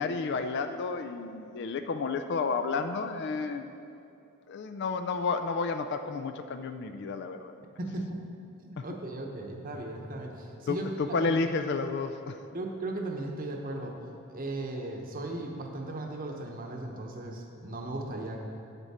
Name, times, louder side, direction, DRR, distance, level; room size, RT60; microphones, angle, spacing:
voice 1, 0.0-3.7 4.5-7.5 8.8-8.9 10.7-12.4, left 4 dB, 50° left, 8 dB, 0.3 m, -31 dB
voice 2, 7.8-8.2 8.6-10.9 11.2-11.3 12.5-14.0 14.3-18.4, right 2 dB, 40° right, 2 dB, 0.9 m, -37 dB
8.7 x 8.1 x 4.2 m, 2.7 s
head